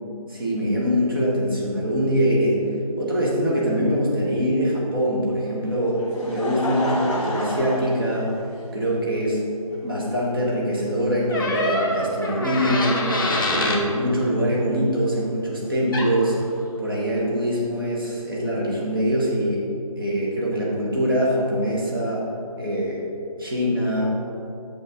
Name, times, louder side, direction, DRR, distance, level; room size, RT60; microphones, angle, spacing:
voice 1, 0.3-2.6 3.0-8.3 8.7-9.4 9.8-13.0 13.5-16.4 16.8-19.6 20.0-22.3 22.6-23.0 23.4-24.2, equal, 35° right, -4 dB, 1.6 m, -23 dB
Laughter, 5.7-8.9 9.7-9.8 11.3-11.4, left 1 dB, 55° left, 1.7 m, -30 dB
sound 1, 11.3-13.8 15.9-16.1, left 1 dB, 35° left, 1.0 m, -24 dB
8.5 x 6.1 x 3.8 m, 2.7 s
figure-of-eight pair, 175°, 19 cm